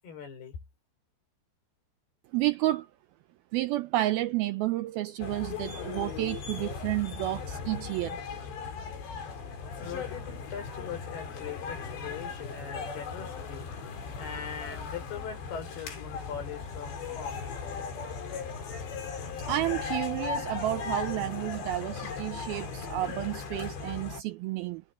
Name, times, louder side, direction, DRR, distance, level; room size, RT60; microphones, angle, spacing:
voice 1, 0.0-0.6 9.8-13.7 14.2-17.5, left 7 dB, 65° left, 7.3 m, -41 dB
voice 2, 2.3-2.9 3.5-8.2 19.5-24.8, right 16 dB, 80° right, 2.2 m, -31 dB
sound 1, 5.2-24.2, left 5 dB, 85° left, 6.5 m, -37 dB
omnidirectional pair, 4.9 m